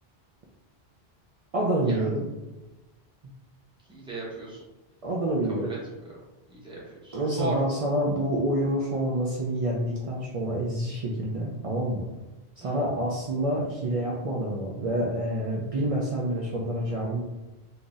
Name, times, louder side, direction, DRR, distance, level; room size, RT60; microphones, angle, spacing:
voice 1, 1.5-2.2 5.0-5.7 7.1-12.1 12.6-17.2, right 1 dB, 60° right, -3 dB, 0.3 m, -27 dB
voice 2, 3.9-4.6 5.5-5.8 6.0-6.1 6.5-7.6 12.6-12.9, right 2 dB, 5° right, -5 dB, 0.8 m, -37 dB
3.8 x 2.7 x 2.4 m, 1.1 s
omnidirectional pair, 1.1 m